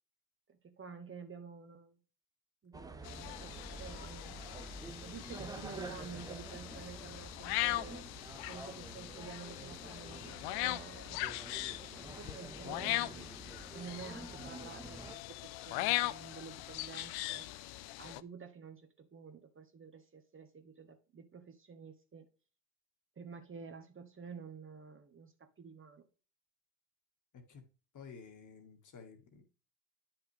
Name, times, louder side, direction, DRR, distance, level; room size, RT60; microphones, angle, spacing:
voice 1, 0.5-2.0 2.6-4.4 5.0-8.1 8.4-11.2 12.0-13.3 13.7-17.7 18.0-22.3 23.2-25.3 25.6-26.1, right 5 dB, 25° right, 6 dB, 1.2 m, -50 dB
sound 1, 2.7-15.2, right 3 dB, 10° right, 0.7 m, -49 dB
sound 2, 3.0-18.2, left 17 dB, 55° left, 0.6 m, -40 dB
voice 2, 27.3-27.6 27.9-29.4, left 5 dB, 35° left, 5 dB, 1.8 m, -53 dB
9.6 x 5.9 x 3.4 m, 0.36 s
hypercardioid pair, 70°, 49 cm